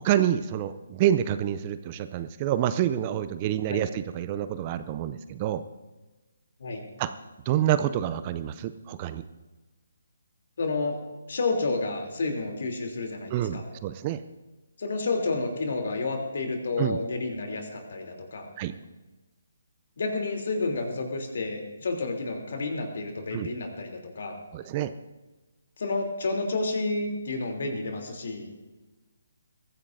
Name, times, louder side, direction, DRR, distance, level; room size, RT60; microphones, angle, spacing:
voice 1, 0.0-5.6 7.0-7.1 7.5-9.2 13.3-14.2 16.8-17.0 18.6-18.7 23.3-23.5 24.5-24.9, right 11 dB, 30° right, 12 dB, 0.5 m, -27 dB
voice 2, 10.6-11.0 11.3-13.6 14.8-18.5 20.0-24.4 25.8-28.5, left 3 dB, 55° left, 3 dB, 3.1 m, -30 dB
22.5 x 15.0 x 2.7 m, 1.2 s
figure-of-eight pair, 140°, 0 cm